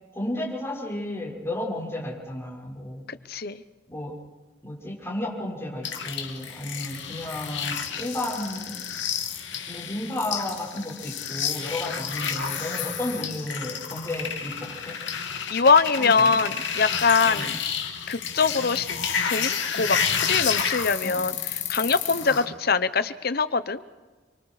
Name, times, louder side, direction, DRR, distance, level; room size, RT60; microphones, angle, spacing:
voice 1, 0.1-3.0 3.9-4.1 4.6-8.8 9.7-14.9 16.2-16.3 17.2-17.5 21.0-21.2 22.2-22.4, left 1 dB, 15° left, -3 dB, 6.4 m, -33 dB
voice 2, 3.1-3.6 15.5-17.6 18.1-18.9 19.2-23.8, left 5 dB, 55° left, 14 dB, 0.9 m, -23 dB
sound 1, 5.8-22.5, left 7 dB, 75° left, 2.5 m, -30 dB
30.0 x 24.0 x 5.0 m, 1.3 s
head